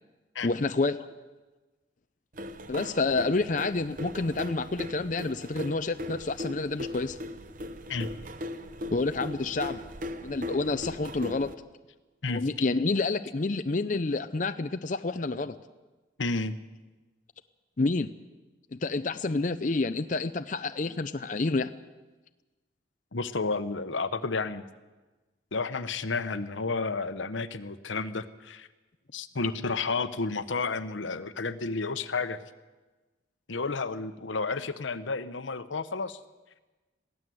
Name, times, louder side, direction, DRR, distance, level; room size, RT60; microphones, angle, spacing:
voice 1, 0.4-1.0 2.7-7.2 8.9-9.8 10.2-11.5 12.3-15.6 17.8-18.1 18.7-21.7, left 3 dB, 40° left, 10 dB, 0.6 m, -29 dB
sound 1, 2.4-11.5, left 1 dB, 45° right, 0.9 m, -39 dB
voice 2, 16.2-16.6 23.1-24.6 25.5-28.7 29.1-32.4 33.5-36.2, left 4 dB, 90° left, 12 dB, 1.0 m, -31 dB
22.0 x 16.0 x 7.8 m, 1.2 s
head